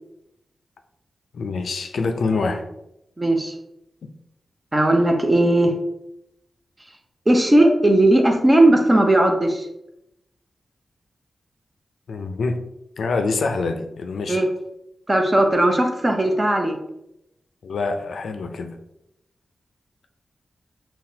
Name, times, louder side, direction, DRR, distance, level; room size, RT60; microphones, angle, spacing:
voice 1, 1.3-2.6 12.1-12.6 13.0-14.4 17.6-18.8, left 3 dB, 80° left, 6 dB, 0.4 m, -25 dB
voice 2, 3.2-3.5 4.7-5.7 7.3-9.7 14.3-14.5 15.1-16.8, right 1 dB, 25° right, 3 dB, 0.6 m, -17 dB
5.7 x 2.2 x 2.7 m, 0.86 s
cardioid pair, 75°, 0 cm